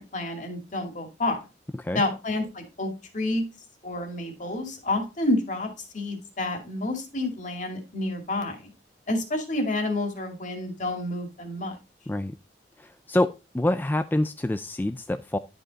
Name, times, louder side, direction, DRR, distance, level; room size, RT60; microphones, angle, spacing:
voice 1, 0.0-1.4 1.9-3.4 3.8-5.7 5.9-8.7 9.1-11.8, left 2 dB, 45° left, 5 dB, 2.3 m, -29 dB
voice 2, 12.8-13.3 13.5-15.4, left 1 dB, 10° left, 9 dB, 0.3 m, -26 dB
11.0 x 5.3 x 4.0 m, 0.28 s
head